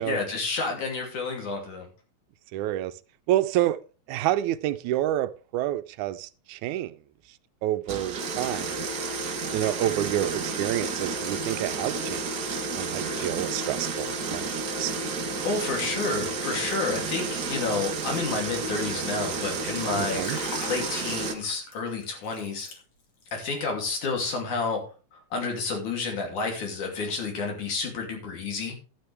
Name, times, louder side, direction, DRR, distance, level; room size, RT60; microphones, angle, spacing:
voice 1, 0.0-1.9 13.1-13.3 15.3-22.7 23.3-24.8 25.1-28.8, left 4 dB, 85° left, 4.3 m, -30 dB
voice 2, 2.5-2.9 3.3-3.8 4.1-6.9 7.6-8.9 9.5-14.9 20.0-20.4, right 13 dB, 85° right, 2.1 m, -28 dB
sound 1, 7.9-21.3, right 4 dB, 50° right, 1.2 m, -31 dB
Liquid, 19.9-23.2 23.5-23.8, left 4 dB, 70° left, 3.9 m, -41 dB
12.0 x 9.7 x 3.4 m
omnidirectional pair, 3.4 m